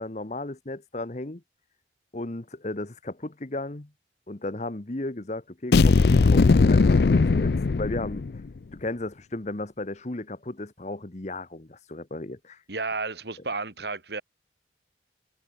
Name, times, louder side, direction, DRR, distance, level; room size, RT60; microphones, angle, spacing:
voice 1, 0.0-1.4 2.1-3.9 4.3-8.2 8.7-12.6, left 2 dB, 40° left, 1.1 m, -35 dB
sound 1, 5.7-8.5, left 4 dB, 60° left, 0.5 m, -19 dB
voice 2, 12.7-14.2, right 3 dB, 65° right, 2.6 m, -32 dB
head